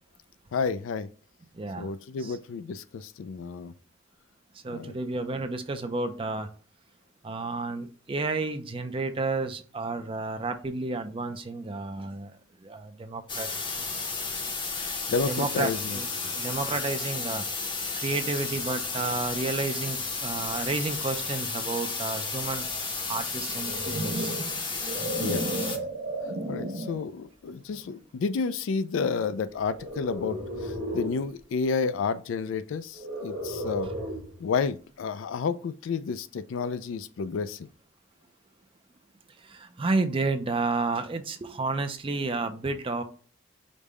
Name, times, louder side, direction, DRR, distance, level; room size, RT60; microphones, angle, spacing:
voice 1, 0.5-1.1 1.8-3.7 4.7-5.0 14.8-16.0 24.8-25.9 26.5-33.9 34.4-37.7, left 5 dB, 70° left, 0.3 m, -31 dB
voice 2, 1.5-1.9 2.2-2.4 4.5-6.5 7.2-12.3 12.6-13.5 15.3-16.1 16.3-22.7 23.1-24.4 39.4-43.0, right 3 dB, 25° right, 0.4 m, -31 dB
sound 1, 13.3-25.8, left 4 dB, 25° left, 0.6 m, -33 dB
sound 2, 23.4-27.1 27.7-28.0 29.7-31.3 32.9-34.4, right 1 dB, 75° right, 1.0 m, -34 dB
5.2 x 2.1 x 4.7 m
head